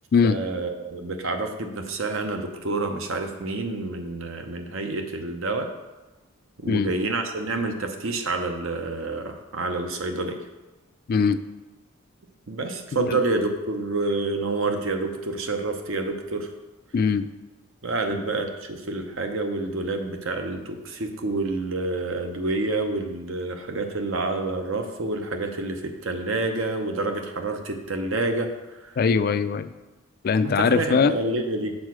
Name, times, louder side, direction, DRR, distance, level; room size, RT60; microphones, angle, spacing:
voice 1, 0.2-5.7 6.6-10.5 12.5-16.5 17.8-29.0 30.4-31.8, right 2 dB, 65° right, 5 dB, 0.8 m, -28 dB
voice 2, 16.9-17.3 29.0-29.7 30.2-31.1, left 5 dB, 45° left, 12 dB, 0.3 m, -20 dB
6.4 x 4.7 x 6.2 m, 1.1 s
head